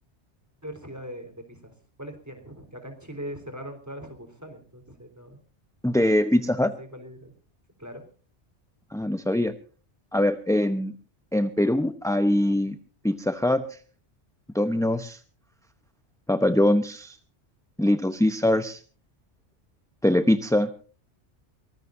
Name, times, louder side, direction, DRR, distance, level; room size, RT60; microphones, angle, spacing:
voice 1, 0.6-5.4 6.4-7.3 7.8-8.0, equal, 15° right, 5 dB, 3.9 m, -41 dB
voice 2, 5.8-6.7 8.9-9.5 10.1-10.9 11.3-12.7 13.0-13.6 14.5-15.2 16.3-17.2 17.8-18.8 20.0-20.7, left 1 dB, 5° left, 9 dB, 0.6 m, -22 dB
23.5 x 20.0 x 2.6 m, 0.39 s
omnidirectional pair, 1.2 m